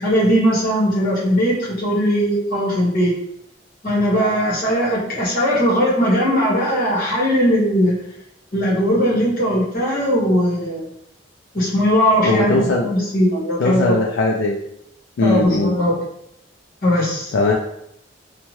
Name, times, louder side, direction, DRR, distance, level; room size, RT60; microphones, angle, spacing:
voice 1, 0.0-3.1 3.8-8.0 8.5-10.9 11.5-14.0 15.2-16.0 16.8-17.3, equal, 50° left, -5 dB, 1.1 m, -19 dB
voice 2, 12.2-12.9 13.6-14.6 15.2-15.8 17.3-17.5, left 2 dB, 90° left, 0 dB, 0.4 m, -19 dB
2.7 x 2.2 x 3.0 m, 0.77 s
head